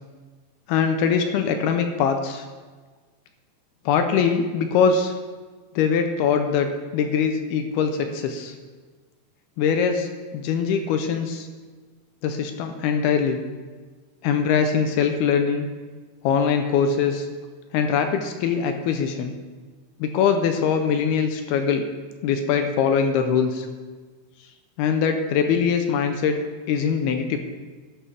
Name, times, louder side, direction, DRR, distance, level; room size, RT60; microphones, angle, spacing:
voice 1, 0.7-2.4 3.9-5.1 5.8-8.5 9.6-11.5 12.2-13.4 14.2-15.7 16.2-17.3 17.7-19.3 20.0-21.9 22.2-23.7 24.8-26.4 26.7-27.4, left 6 dB, 80° left, 6 dB, 2.5 m, -22 dB
11.5 x 11.0 x 3.4 m, 1.4 s
omnidirectional pair, 4.9 m